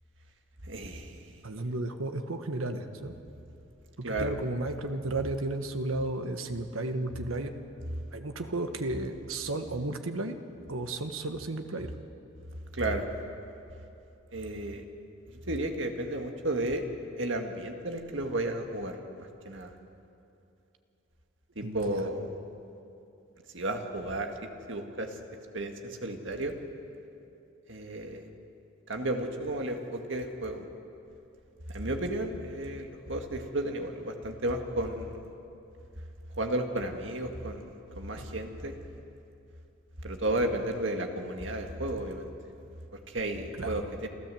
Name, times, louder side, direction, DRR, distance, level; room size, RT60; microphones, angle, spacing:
voice 1, 0.7-1.3 4.0-4.3 12.7-13.1 14.3-14.8 15.5-16.8 17.2-19.7 21.6-22.3 23.5-24.3 24.7-25.1 25.5-26.5 27.7-28.3 28.9-30.6 31.7-35.2 36.4-37.6 38.0-38.7 40.0-42.3 43.1-44.1, right 1 dB, 65° right, 4 dB, 1.9 m, -33 dB
voice 2, 1.4-3.1 4.0-7.5 8.1-10.4 10.7-11.9 21.6-22.0 38.2-38.3 43.6-43.8, right 2 dB, 90° right, 7 dB, 1.4 m, -33 dB
28.0 x 13.5 x 7.8 m, 2.8 s
head